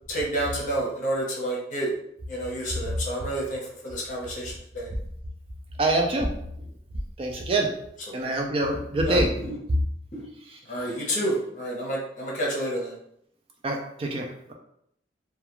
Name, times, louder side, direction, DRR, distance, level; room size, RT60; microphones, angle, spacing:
voice 1, 0.1-1.9 2.3-4.9 9.0-9.2 9.5-9.6 10.7-12.9, right 1 dB, 45° left, -3 dB, 0.8 m, -29 dB
voice 2, 5.8-6.3 7.2-7.7 8.1-9.3 10.5-10.6 13.6-14.5, right 2 dB, 30° right, 2 dB, 0.3 m, -25 dB
2.3 x 2.2 x 2.9 m, 0.73 s
head